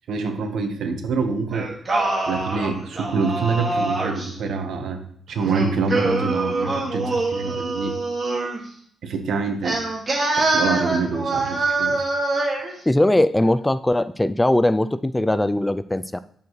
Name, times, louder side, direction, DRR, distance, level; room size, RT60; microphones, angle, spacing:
voice 1, 0.1-1.7 2.3-5.0 5.3-8.0 9.0-9.8 10.4-12.0, right 4 dB, 80° right, 6 dB, 1.3 m, -26 dB
Singing, 1.5-4.3 5.4-8.6 9.6-12.7, right 2 dB, 35° right, 2.1 m, -24 dB
voice 2, 12.9-16.2, left 1 dB, 10° left, 14 dB, 0.3 m, -20 dB
10.5 x 6.9 x 3.2 m, 0.62 s
cardioid pair, 115°, 0 cm